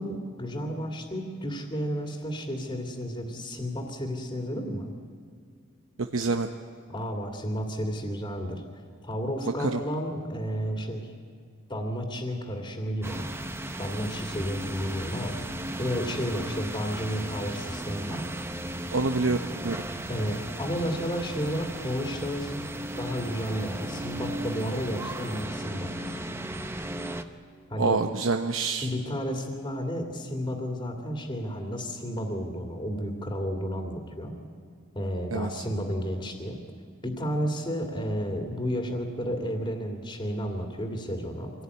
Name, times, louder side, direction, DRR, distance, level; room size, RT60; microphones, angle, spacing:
voice 1, 0.0-4.9 6.9-8.6 9.0-11.1 11.7-13.3 13.8-15.3 15.8-18.2 20.1-22.7 23.0-25.9 27.7-28.0 28.8-34.3 34.9-36.6 37.0-41.5, equal, 25° left, 2 dB, 2.5 m, -32 dB
voice 2, 6.1-6.5 9.6-9.8 18.9-19.4 19.6-19.8 27.8-28.9 35.3-35.5, right 3 dB, 85° right, 6 dB, 0.9 m, -26 dB
sound 1, 13.0-27.2, right 1 dB, 10° right, 0.9 m, -36 dB
25.0 x 17.5 x 9.6 m, 2.1 s
head